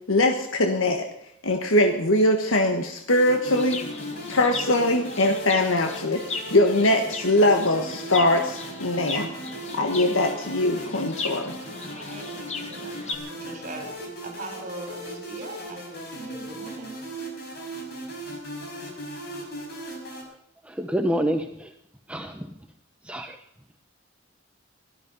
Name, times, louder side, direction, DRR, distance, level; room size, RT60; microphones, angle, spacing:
voice 1, 0.1-1.1 1.4-3.8 4.3-11.5, left 1 dB, 75° left, 5 dB, 1.5 m, -22 dB
sound 1, 3.1-20.2, right 1 dB, 55° left, 5.5 m, -38 dB
Chirp tweet, 3.4-13.1, left 3 dB, 35° left, 2.0 m, -37 dB
voice 2, 11.4-16.9, right 2 dB, 40° right, 2 dB, 6.7 m, -41 dB
voice 3, 20.7-21.7 22.1-22.5 23.1-23.4, equal, 5° right, 5 dB, 0.8 m, -27 dB
17.5 x 13.5 x 5.4 m, 0.79 s
head